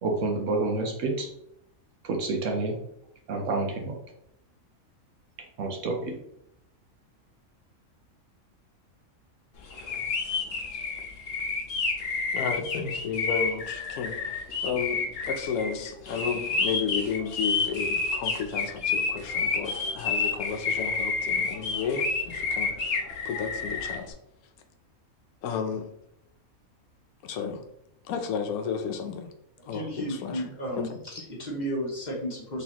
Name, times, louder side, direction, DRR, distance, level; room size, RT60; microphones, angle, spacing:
voice 1, 0.0-1.3 2.0-2.8 3.3-4.0 5.6-6.2, right 3 dB, 65° right, 2 dB, 1.0 m, -28 dB
sound 1, 9.7-24.0, left 4 dB, 55° left, 0.8 m, -29 dB
voice 2, 12.3-23.0 23.2-24.2 25.4-25.9 27.2-27.6 28.1-29.3 29.7-30.4 30.8-31.0, left 6 dB, 85° left, 6 dB, 1.1 m, -32 dB
voice 3, 29.7-32.6, equal, 35° left, -4 dB, 1.2 m, -33 dB
3.9 x 3.3 x 2.9 m, 0.75 s
omnidirectional pair, 1.5 m